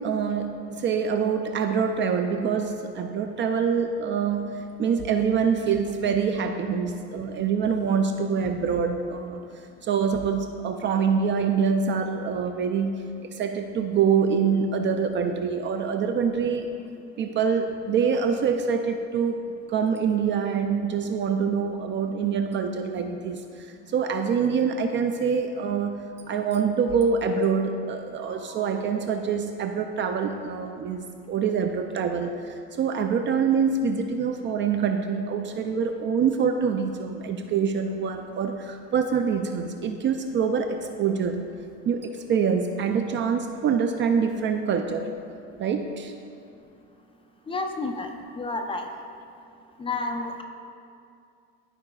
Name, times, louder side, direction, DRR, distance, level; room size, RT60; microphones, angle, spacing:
voice 1, 0.0-9.4 9.8-16.7 17.2-19.4 19.7-41.5 41.9-45.1 45.6-46.1, right 6 dB, 35° right, 5 dB, 0.4 m, -25 dB
voice 2, 47.5-48.8 49.8-50.4, left 3 dB, 15° left, 4 dB, 0.6 m, -30 dB
12.5 x 4.8 x 2.3 m, 2.4 s
supercardioid pair, 115°, 32 cm